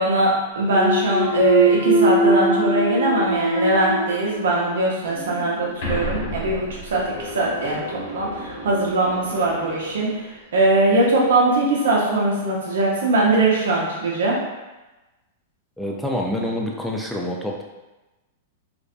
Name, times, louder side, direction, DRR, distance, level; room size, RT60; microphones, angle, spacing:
voice 1, 0.0-10.1 10.5-14.4, right 2 dB, 70° right, -3 dB, 0.7 m, -21 dB
Thump thud, 0.6-4.7 5.1-9.8, right 2 dB, 65° left, 0.9 m, -23 dB
voice 2, 15.8-17.6, left 1 dB, ahead, -2 dB, 0.4 m, -26 dB
2.5 x 2.2 x 2.4 m, 1.1 s
hypercardioid pair, 115°, 0 cm